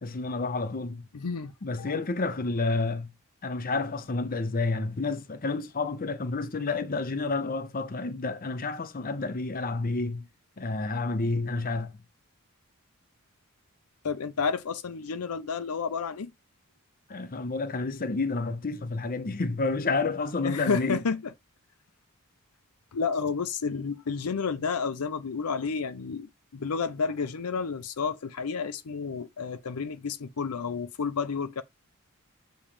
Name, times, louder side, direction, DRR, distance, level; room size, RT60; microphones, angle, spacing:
voice 1, 0.0-1.1 1.6-3.1 3.4-10.3 10.6-11.9 17.1-21.0, left 3 dB, 40° left, 0.7 m, -30 dB
voice 2, 1.1-1.5 1.8-2.0 14.0-16.3 20.4-21.2 22.9-31.6, left 5 dB, 75° left, 0.6 m, -31 dB
7.2 x 3.1 x 5.0 m
head